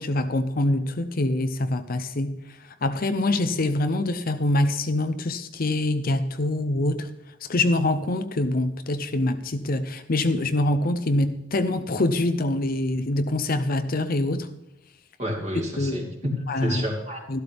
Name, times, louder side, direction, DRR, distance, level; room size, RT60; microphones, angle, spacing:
voice 1, 0.0-7.1 7.5-14.5 15.8-16.1 16.5-16.8 17.3-17.4, left 2 dB, 40° left, 9 dB, 0.6 m, -25 dB
voice 2, 15.2-17.2, equal, 30° right, 0 dB, 2.6 m, -30 dB
13.5 x 12.0 x 3.5 m, 0.91 s
head